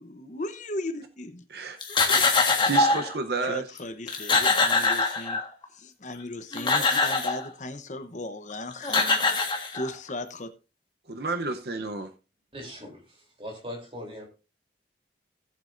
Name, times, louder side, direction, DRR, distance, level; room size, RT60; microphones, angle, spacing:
voice 1, 0.0-1.4 3.4-5.4 5.7-9.3 9.7-10.5, left 1 dB, 40° left, 9 dB, 0.9 m, -37 dB
sound 1, 1.8-3.1 3.8-3.9 4.1-5.6 6.3-7.5 8.5-8.6 8.8-10.1, left 3 dB, 25° left, 1.5 m, -23 dB
voice 2, 2.6-3.6 11.1-12.1, right 4 dB, 55° right, 7 dB, 0.8 m, -30 dB
voice 3, 12.5-14.3, equal, 30° right, 1 dB, 3.4 m, -40 dB
17.5 x 7.5 x 2.6 m, 0.31 s
head